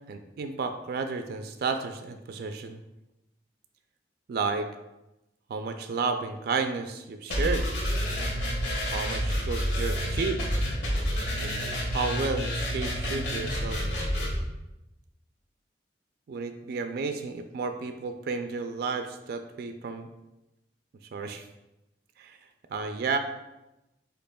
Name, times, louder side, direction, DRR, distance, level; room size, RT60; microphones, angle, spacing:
voice 1, 0.1-2.8 4.3-4.7 5.5-7.7 8.9-10.4 11.4-11.7 11.9-13.8 16.3-20.1 21.1-21.5 22.2-22.4 22.7-23.2, right 4 dB, 60° right, 7 dB, 0.3 m, -32 dB
sound 1, 7.3-14.3, equal, 80° left, 1.5 m, -29 dB
8.3 x 2.9 x 2.2 m, 0.95 s
head